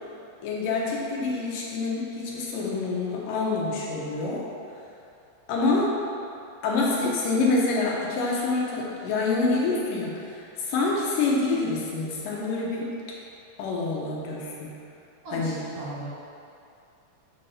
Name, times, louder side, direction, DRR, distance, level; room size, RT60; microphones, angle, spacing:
voice 1, 0.4-4.4 5.5-6.0 6.6-12.9 13.6-14.7 15.3-15.6, left 3 dB, 75° left, -4 dB, 2.4 m, -26 dB
voice 2, 15.2-16.1, right 2 dB, 65° right, -9 dB, 1.7 m, -36 dB
7.4 x 4.1 x 5.6 m, 2.5 s
omnidirectional pair, 4.2 m